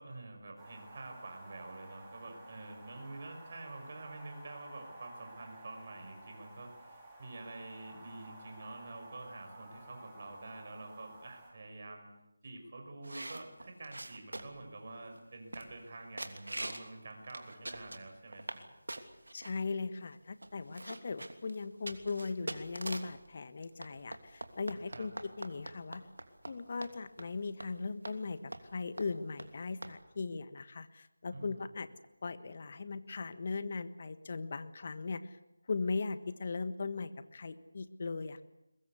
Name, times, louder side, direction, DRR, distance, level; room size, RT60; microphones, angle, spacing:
voice 1, 0.0-12.1 12.4-18.6 24.9-25.1 31.3-31.6, right 2 dB, 40° right, 4 dB, 6.1 m, -47 dB
sound 1, 0.6-11.5, right 1 dB, 10° right, 5.1 m, -53 dB
sound 2, 13.0-14.7 15.2-15.3 15.5-15.9 16.2-16.9 17.3-18.6 18.9-19.5 20.1-20.2 20.4-23.2 23.8-26.5 26.8-26.9 27.2-27.3 27.6-27.7 28.0-28.2 28.5-28.7 29.0-29.1 29.4-29.5 29.8-29.9, right 1 dB, 80° right, 3.0 m, -43 dB
voice 2, 19.3-25.1 25.4-26.0 26.5-31.9 32.2-35.4 35.7-38.4, left 4 dB, 40° left, 12 dB, 1.4 m, -38 dB
22.5 x 21.5 x 8.3 m, 0.92 s
figure-of-eight pair, 165°, 0 cm